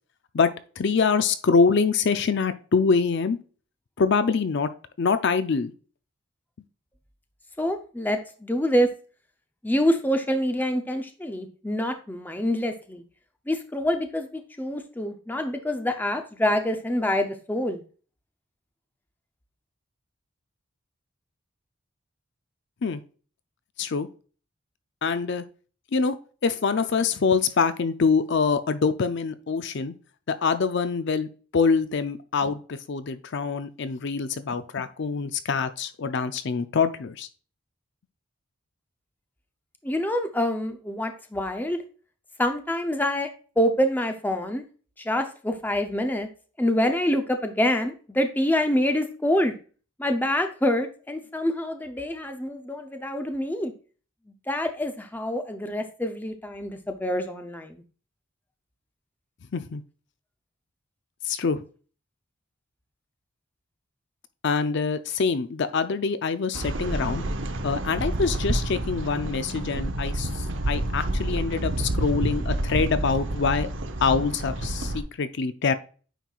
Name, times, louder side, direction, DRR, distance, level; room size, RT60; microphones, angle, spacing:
voice 1, 0.3-3.4 4.0-4.7 5.0-5.7 22.8-23.0 23.8-24.1 25.0-25.4 25.9-26.2 26.4-29.9 30.3-37.3 59.5-59.8 61.2-61.6 64.4-67.2 67.6-73.7 74.0-75.7, left 5 dB, 55° left, 11 dB, 0.5 m, -25 dB
voice 2, 7.6-8.9 9.6-13.0 13.5-17.8 39.8-41.8 42.4-43.3 43.6-44.6 45.0-46.3 46.6-49.5 50.0-53.7 54.5-57.8, left 1 dB, 10° left, 6 dB, 0.6 m, -26 dB
sound 1, 66.5-75.0, right 1 dB, 60° right, 0.9 m, -29 dB
9.0 x 4.6 x 2.4 m, 0.39 s
head